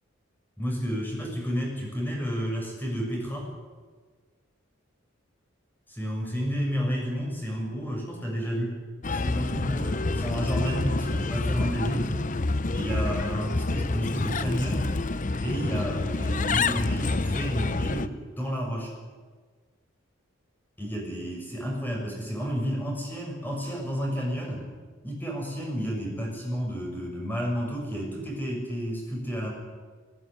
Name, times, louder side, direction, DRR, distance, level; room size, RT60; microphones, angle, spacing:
voice 1, 0.6-3.5 5.9-8.7 9.1-12.1 12.7-14.9 15.4-18.9 20.8-24.7 25.0-29.5, equal, 10° left, -1 dB, 6.4 m, -31 dB
Bird, 9.0-18.1, left 3 dB, 40° left, 0.7 m, -28 dB
19.5 x 17.5 x 9.8 m, 1.5 s
head